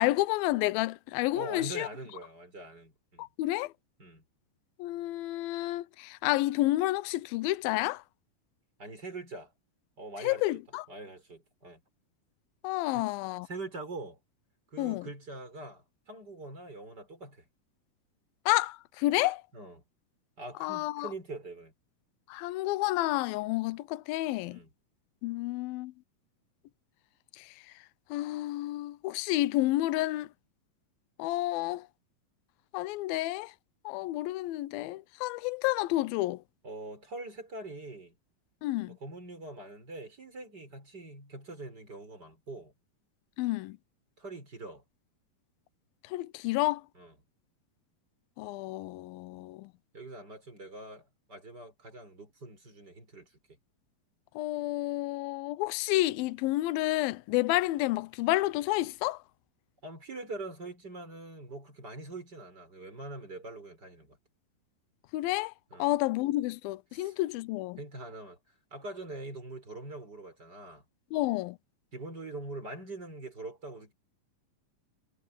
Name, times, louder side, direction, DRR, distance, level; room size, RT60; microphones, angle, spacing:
voice 1, 0.0-1.9 3.2-3.7 4.8-8.0 10.2-10.9 12.6-13.5 14.8-15.1 18.5-19.4 20.6-21.1 22.3-24.6 25.2-25.9 27.4-27.6 28.1-30.3 31.2-31.9 32.7-33.5 33.8-36.4 38.6-39.0 43.4-43.8 46.0-46.8 48.4-49.7 54.4-59.2 65.1-65.5 65.8-67.8 71.1-71.6, left 17 dB, 85° left, 2.5 m, -30 dB
voice 2, 1.3-3.3 4.0-4.2 8.8-9.5 10.0-10.4 10.9-11.8 12.9-13.0 13.4-14.2 14.7-17.5 19.5-19.8 20.4-21.7 24.5-24.7 36.6-38.2 38.9-42.7 44.2-44.8 46.9-47.1 49.9-53.3 59.8-64.2 65.7-65.9 66.9-67.2 67.8-68.4 68.7-70.8 71.9-73.9, right 2 dB, 25° right, 6.7 m, -43 dB
omnidirectional pair, 4.2 m